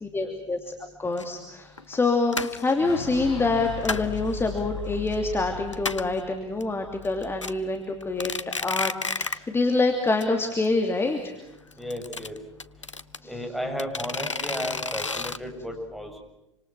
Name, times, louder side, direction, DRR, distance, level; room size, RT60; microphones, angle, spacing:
voice 1, 0.0-0.7 1.0-11.3 13.2-13.4, left 3 dB, 15° left, 4 dB, 2.9 m, -26 dB
sound 1, 1.2-1.3 1.8-2.0 2.3-2.7 3.4-4.2 4.6-5.1 5.4-5.5 5.7-6.2 6.6-6.7 7.0-7.5 8.0-9.5 9.8-9.9 10.2-10.3 10.5-10.6 11.7-13.2 13.8-15.4, left 4 dB, 85° left, 0.9 m, -31 dB
Fire / Explosion, 2.3-8.2, left 5 dB, 70° left, 2.4 m, -38 dB
voice 2, 11.8-12.4 13.2-16.2, equal, ahead, 3 dB, 7.0 m, -33 dB
28.0 x 26.0 x 6.2 m, 0.95 s
figure-of-eight pair, 75°, 15 cm